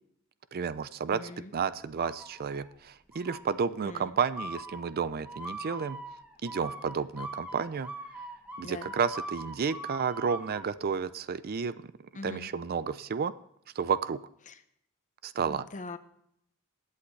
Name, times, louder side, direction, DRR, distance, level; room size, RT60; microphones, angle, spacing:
voice 1, 0.5-6.0 6.4-7.9 8.6-11.9 12.2-13.3 13.8-14.2 15.2-15.6, right 6 dB, 45° right, 15 dB, 0.4 m, -31 dB
voice 2, 1.1-1.5 3.8-4.2 8.6-8.9 12.1-12.5 14.5-14.6 15.4-16.0, left 2 dB, 35° left, 10 dB, 0.8 m, -42 dB
sound 1, 2.0-2.7 3.1-3.7 4.4-10.7, right 1 dB, 5° right, 1.1 m, -42 dB
21.0 x 8.5 x 3.2 m, 0.72 s
head